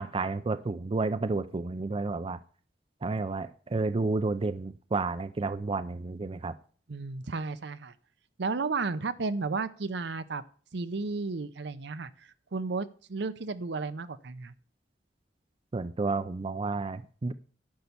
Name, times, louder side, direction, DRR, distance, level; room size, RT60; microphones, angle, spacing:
voice 1, 0.0-2.4 3.0-6.5 15.7-17.3, right 3 dB, 30° right, 12 dB, 0.4 m, -31 dB
voice 2, 6.9-7.9 8.4-10.4 10.7-14.5, right 4 dB, 70° right, 13 dB, 0.6 m, -33 dB
10.5 x 5.4 x 6.9 m, 0.42 s
head